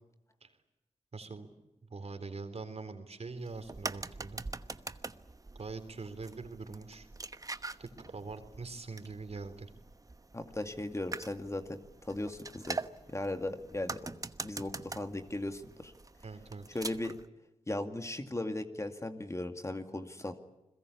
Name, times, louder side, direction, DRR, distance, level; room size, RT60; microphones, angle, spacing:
voice 1, 1.1-1.5 1.9-4.4 5.6-7.1 7.8-9.7 16.2-16.6, right 4 dB, 55° right, 9 dB, 3.7 m, -43 dB
sound 1, 3.4-17.3, right 3 dB, 25° right, 1.0 m, -44 dB
voice 2, 10.3-12.8 13.1-14.1 14.4-15.9 16.7-17.2 17.7-20.4, left 1 dB, 20° left, 7 dB, 2.3 m, -37 dB
29.5 x 21.5 x 8.4 m, 0.95 s
wide cardioid pair, 75°, 13 cm